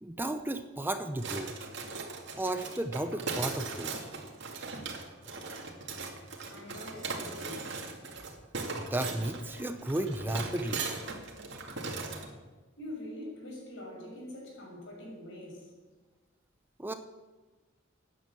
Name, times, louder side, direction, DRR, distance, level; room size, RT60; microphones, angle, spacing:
voice 1, 0.0-1.7 2.4-3.9 8.8-10.8 16.8-16.9, right 1 dB, 10° right, 8 dB, 0.7 m, -34 dB
sound 1, 1.2-12.3, right 4 dB, 60° right, 2.2 m, -39 dB
voice 2, 6.5-7.7 12.8-15.7, left 1 dB, 70° left, -1 dB, 6.7 m, -44 dB
14.0 x 9.5 x 8.4 m, 1.3 s
head